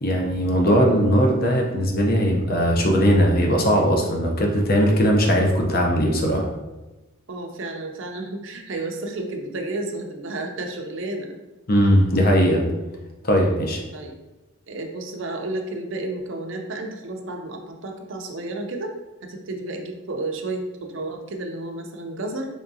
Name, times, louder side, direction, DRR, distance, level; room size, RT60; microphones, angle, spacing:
voice 1, 0.0-6.5 11.7-12.7 13.2-13.8, equal, 40° left, 1 dB, 0.6 m, -19 dB
voice 2, 7.3-11.4 13.9-14.2 14.7-18.9 19.2-22.5, right 2 dB, 55° right, 3 dB, 0.5 m, -31 dB
3.6 x 3.4 x 2.6 m, 1.1 s
head